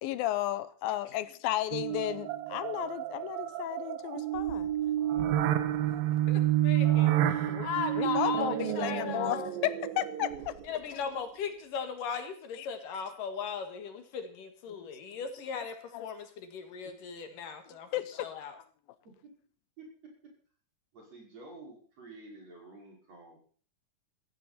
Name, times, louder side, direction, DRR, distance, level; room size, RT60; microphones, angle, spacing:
voice 1, 0.0-4.7 6.9-7.1 7.5-7.7 8.0-10.5 12.5-12.7 14.7-14.8 15.9-16.1 17.9-18.2, left 14 dB, 90° left, 15 dB, 2.6 m, -34 dB
sound 1, 1.7-10.8, right 12 dB, 85° right, 2.8 m, -30 dB
voice 2, 6.3-9.5 10.6-18.6, left 6 dB, 70° left, 7 dB, 3.3 m, -38 dB
voice 3, 19.8-20.3 20.9-23.4, right 2 dB, 45° right, -1 dB, 6.5 m, -50 dB
15.0 x 15.0 x 4.2 m, 0.43 s
omnidirectional pair, 4.0 m